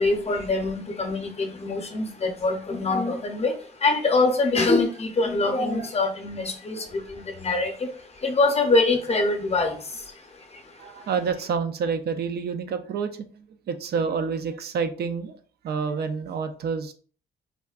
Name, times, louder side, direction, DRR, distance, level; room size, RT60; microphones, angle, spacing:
voice 1, 0.0-3.5 3.8-6.8 7.1-7.9 8.2-9.8, left 3 dB, 30° left, 4 dB, 0.7 m, -24 dB
voice 2, 10.8-15.4 15.6-16.9, right 5 dB, 55° right, 7 dB, 0.4 m, -28 dB
3.6 x 2.2 x 2.4 m, 0.43 s
cardioid pair, 90°, 20 cm